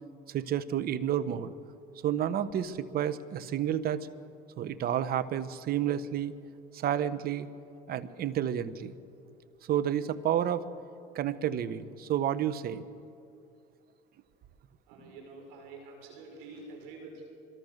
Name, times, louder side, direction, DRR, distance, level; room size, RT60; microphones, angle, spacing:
voice 1, 0.3-1.5 2.0-4.1 4.6-6.3 6.7-7.5 7.9-8.9 9.7-10.6 11.1-12.8, right 10 dB, 55° right, 13 dB, 1.2 m, -30 dB
voice 2, 14.9-17.2, right 3 dB, 80° right, 1 dB, 6.7 m, -47 dB
24.5 x 23.0 x 6.7 m, 2.5 s
supercardioid pair, 90°, 19 cm